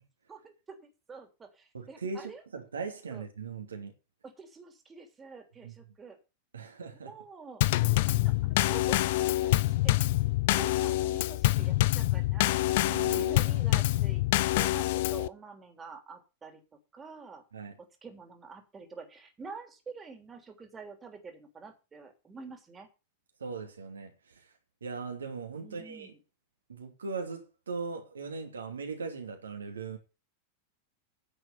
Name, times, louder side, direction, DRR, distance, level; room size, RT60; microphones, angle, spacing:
voice 1, 0.3-2.4 3.1-3.2 4.2-6.2 6.9-7.6 8.1-10.0 10.5-12.6 13.1-16.6 16.9-17.4 17.8-22.9 25.6-26.2, right 4 dB, 15° right, 3.3 m, -47 dB
voice 2, 1.7-3.9 5.6-5.7 6.5-7.1 12.9-13.3 17.5-17.7 23.4-24.5 24.8-26.1 26.7-30.0, right 4 dB, 70° right, 2.7 m, -39 dB
Drum kit / Snare drum / Bass drum, 7.6-15.3, left 17 dB, 50° left, 0.6 m, -26 dB
10.0 x 7.5 x 7.0 m
figure-of-eight pair, 90°, 0 cm